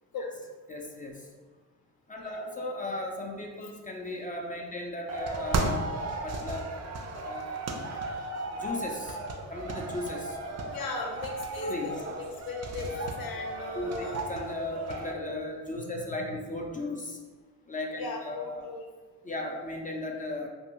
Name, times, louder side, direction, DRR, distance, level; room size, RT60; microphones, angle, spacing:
voice 1, 0.7-1.3 2.1-6.7 7.1-7.6 8.5-9.2 9.5-10.4 11.6-11.9 13.7-17.2 17.7-18.7 19.2-20.5, left 1 dB, 20° left, 1 dB, 0.4 m, -36 dB
voice 2, 2.2-2.5 10.7-14.2 15.8-16.3 18.0-18.9, left 4 dB, 65° left, 1 dB, 0.7 m, -38 dB
sound 1, 5.1-15.1, right 2 dB, 45° right, 0.4 m, -35 dB
2.6 x 2.5 x 3.0 m, 1.4 s
cardioid pair, 75°, 38 cm